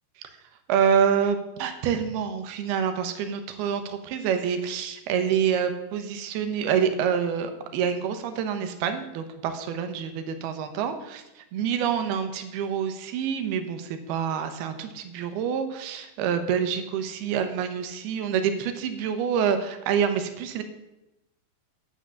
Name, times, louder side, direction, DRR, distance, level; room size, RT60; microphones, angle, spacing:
voice 1, 0.7-20.6, right 7 dB, 85° right, 8 dB, 2.9 m, -27 dB
9.8 x 7.5 x 7.0 m, 0.96 s
omnidirectional pair, 4.5 m